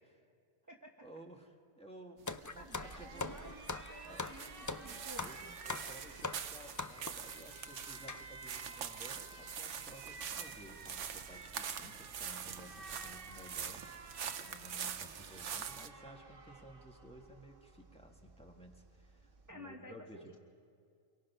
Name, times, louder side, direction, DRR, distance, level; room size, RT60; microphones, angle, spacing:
voice 1, 1.0-3.3 4.0-4.3 4.7-5.4 5.7-13.8 14.2-20.4, right 1 dB, 5° left, 1 dB, 1.7 m, -55 dB
sound 1, 2.2-15.9, right 8 dB, 80° right, 1.2 m, -45 dB
sound 2, 2.3-7.3 8.1-8.2 9.0-9.1 9.2-9.4 10.4-10.6 11.1-11.2 11.7-11.8 12.2-12.5 12.8-13.0, left 3 dB, 30° left, 0.3 m, -42 dB
Alarm, 2.3-19.5, right 3 dB, 50° right, 1.5 m, -53 dB
voice 2, 2.6-5.6 19.5-20.0, equal, 15° right, 0 dB, 1.2 m, -53 dB
28.0 x 23.5 x 5.6 m, 2.3 s
omnidirectional pair, 1.2 m